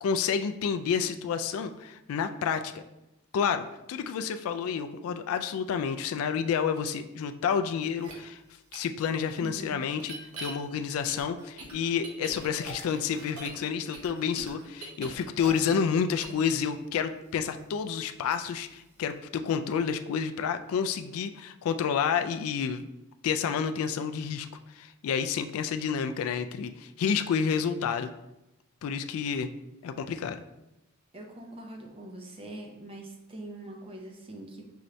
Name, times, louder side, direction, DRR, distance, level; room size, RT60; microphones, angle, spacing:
voice 1, 0.0-2.8 3.3-8.4 8.7-22.8 23.2-24.5 24.7-28.1 28.8-29.5 29.8-30.4, left 7 dB, 70° left, 8 dB, 0.3 m, -29 dB
sound 1, 8.0-8.1 8.7-8.8 10.0-10.5 11.1-13.6 13.9-15.9 16.2-16.4, right 2 dB, 85° right, 0.9 m, -42 dB
voice 2, 9.4-9.9 31.1-34.7, right 1 dB, 25° right, 1 dB, 0.6 m, -43 dB
5.6 x 2.6 x 3.1 m, 0.92 s
head